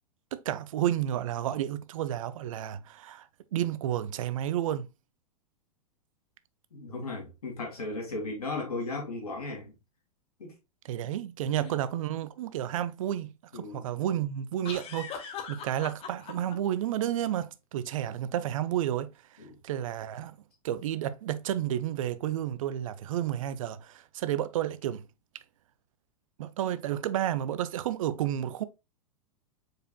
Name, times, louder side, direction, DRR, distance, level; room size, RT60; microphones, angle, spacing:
voice 1, 0.3-4.9 10.8-20.4 20.6-25.0 26.4-28.6, right 11 dB, 60° right, 0.5 m, -31 dB
voice 2, 6.7-9.7 10.4-10.5 11.4-11.7 13.5-13.9 19.4-19.6, left 3 dB, 70° left, 2.4 m, -36 dB
sound 1, 11.6-11.8 14.6-16.5, left 6 dB, 30° left, 1.1 m, -40 dB
4.8 x 4.6 x 2.3 m
figure-of-eight pair, 100°, 20 cm